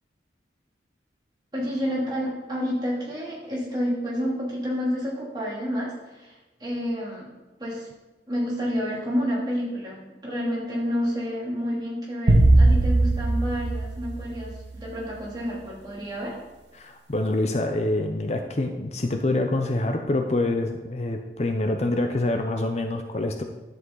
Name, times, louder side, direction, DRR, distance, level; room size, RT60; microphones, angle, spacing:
voice 1, 1.5-7.3 7.6-7.9 8.3-16.3, equal, 25° right, -5 dB, 2.9 m, -29 dB
sound 1, 12.3-14.8, right 2 dB, 85° right, 1.3 m, -19 dB
voice 2, 16.7-23.4, left 2 dB, 35° left, 5 dB, 0.6 m, -26 dB
11.0 x 8.0 x 3.9 m, 1.1 s
head